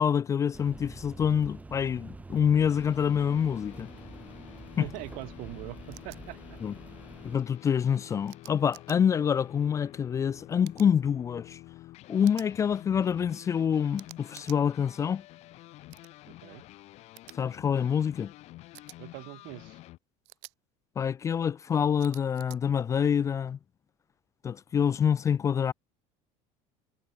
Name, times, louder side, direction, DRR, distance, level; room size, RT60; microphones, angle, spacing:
voice 1, 0.0-3.9 4.8-4.9 6.6-6.7 7.2-11.6 12.1-15.2 17.3-18.3 21.0-23.6 24.4-25.7, left 8 dB, 20° left, 0.4 m, -26 dB
sound 1, 0.5-7.4, right 3 dB, 10° right, 2.2 m, -47 dB
sound 2, 2.7-20.0, left 17 dB, 50° left, 1.4 m, -49 dB
voice 2, 4.8-6.6 16.3-16.6 19.0-19.8, right 30 dB, 70° right, 1.8 m, -42 dB
sound 3, 5.9-6.2 8.3-9.0 10.6-10.9 12.2-12.5 14.0-14.6 15.9-16.1 17.2-17.4 18.7-19.0 20.2-20.5 22.0-22.6, right 32 dB, 85° right, 4.2 m, -49 dB
cardioid pair, 160°, 14 cm